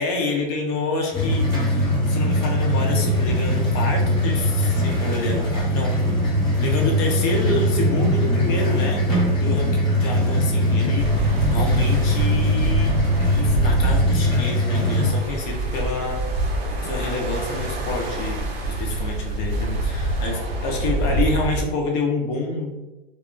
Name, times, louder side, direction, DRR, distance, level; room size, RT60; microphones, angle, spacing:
voice 1, 0.0-5.9 6.6-9.0 9.4-13.0 13.3-16.2 16.8-22.8, left 3 dB, 40° left, 1 dB, 0.7 m, -28 dB
sound 1, 1.1-15.1, equal, 15° left, 1.0 m, -21 dB
sound 2, 11.0-21.6, right 2 dB, 40° right, 0.7 m, -26 dB
2.2 x 2.0 x 3.8 m, 1.0 s
hypercardioid pair, 130°, 31 cm